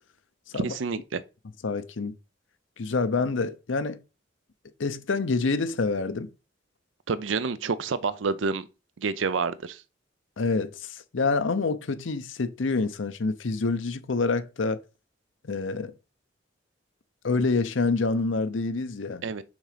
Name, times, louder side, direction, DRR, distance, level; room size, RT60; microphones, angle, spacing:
voice 1, 0.6-1.2 7.1-8.7 9.0-9.8 19.2-19.4, right 4 dB, 80° right, 0.5 m, -28 dB
voice 2, 1.6-2.2 2.8-4.0 4.8-6.3 10.4-14.8 15.4-15.9 17.2-19.2, left 3 dB, 85° left, 0.7 m, -27 dB
6.2 x 3.7 x 5.0 m
head